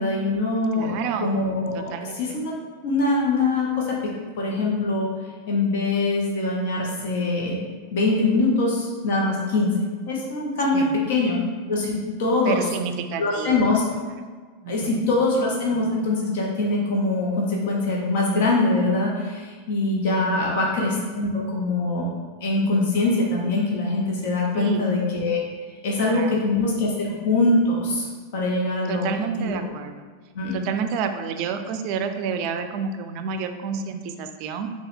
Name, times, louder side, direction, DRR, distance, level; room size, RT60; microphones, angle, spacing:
voice 1, 0.0-2.5 2.8-4.0 4.4-5.1 5.5-7.6 7.9-9.8 10.1-11.4 11.7-12.6 13.2-13.8 14.7-22.1 22.4-25.5 25.8-28.1 28.3-29.0 29.4-29.6 30.3-30.6, left 2 dB, 65° left, -2 dB, 0.9 m, -23 dB
voice 2, 0.7-1.4 1.7-2.4 10.7-11.1 12.4-13.7 14.6-15.1 20.1-20.6 24.5-25.0 26.0-26.4 28.9-30.1 30.5-34.7, right 6 dB, 55° right, 7 dB, 0.3 m, -30 dB
3.8 x 2.4 x 4.3 m, 1.5 s
hypercardioid pair, 105°, 0 cm